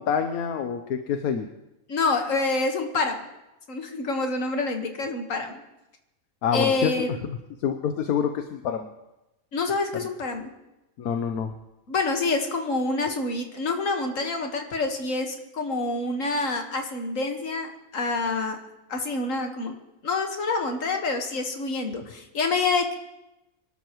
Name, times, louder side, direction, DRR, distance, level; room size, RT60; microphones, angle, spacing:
voice 1, 0.0-1.5 6.4-7.0 7.6-8.9 11.0-11.5, left 7 dB, 80° left, 6 dB, 1.3 m, -26 dB
voice 2, 1.9-3.2 3.7-5.6 6.5-7.1 9.5-10.5 11.9-18.6 18.9-19.8 20.0-23.0, left 3 dB, 60° left, 4 dB, 1.9 m, -27 dB
25.0 x 12.5 x 3.1 m, 0.95 s
omnidirectional pair, 1.5 m